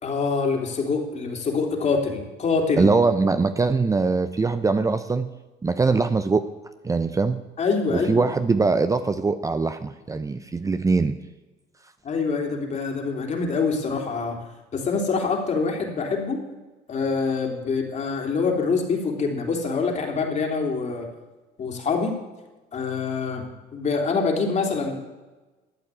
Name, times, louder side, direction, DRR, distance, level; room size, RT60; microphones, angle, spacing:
voice 1, 0.0-2.9 7.6-8.2 12.0-14.4 14.7-16.4 16.9-21.1 21.6-22.2 22.7-23.5 23.7-25.0, left 4 dB, 45° left, 2 dB, 3.3 m, -25 dB
voice 2, 2.8-5.3 5.6-6.4 6.8-7.4 7.9-11.1, right 4 dB, 20° right, 11 dB, 0.6 m, -22 dB
13.5 x 8.8 x 8.4 m, 1.2 s
cardioid pair, 110°, 17 cm